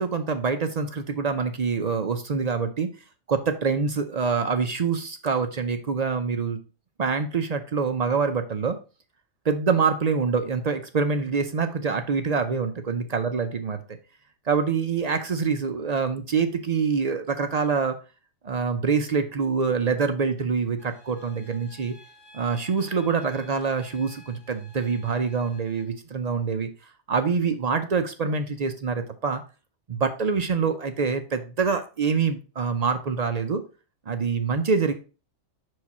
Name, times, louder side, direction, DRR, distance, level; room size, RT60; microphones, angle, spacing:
voice 1, 0.0-2.9 3.3-6.6 7.0-8.8 9.5-13.8 14.5-18.0 18.4-21.9 22.3-26.7 27.1-29.4 29.9-33.6 34.1-34.9, right 5 dB, 55° right, 7 dB, 0.4 m, -25 dB
sound 1, 20.8-25.8, left 1 dB, 40° left, 4.4 m, -53 dB
5.8 x 4.7 x 4.1 m, 0.34 s
omnidirectional pair, 1.4 m